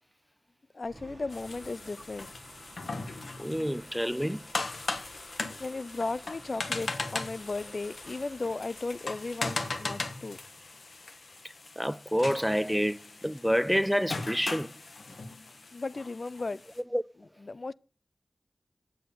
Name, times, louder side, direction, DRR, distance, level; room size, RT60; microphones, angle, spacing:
voice 1, 0.7-2.3 5.6-10.4 15.7-16.6 17.4-17.7, left 3 dB, 60° left, 0.4 m, -35 dB
sound 1, 0.8-13.0, right 2 dB, 45° right, 1.5 m, -54 dB
sound 2, 1.3-16.8, left 3 dB, 85° left, 1.2 m, -39 dB
voice 2, 3.4-4.4 11.8-14.7 16.9-17.0, equal, ahead, 0.4 m, -28 dB
8.5 x 7.7 x 6.8 m
wide cardioid pair, 60°, 0 cm